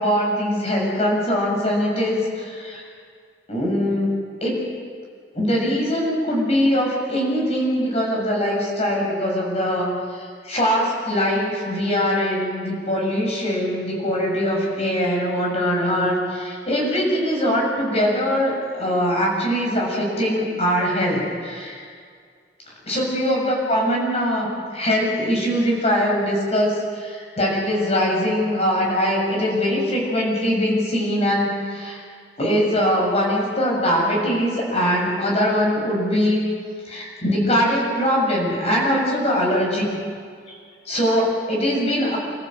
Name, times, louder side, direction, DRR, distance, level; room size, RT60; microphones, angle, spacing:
voice 1, 0.0-2.8 3.5-4.1 4.4-4.7 5.3-21.9 22.9-32.0 32.4-36.5 36.9-39.8 40.9-42.2, equal, 35° left, -2 dB, 7.2 m, -22 dB
29.0 x 14.5 x 7.8 m, 2.1 s
head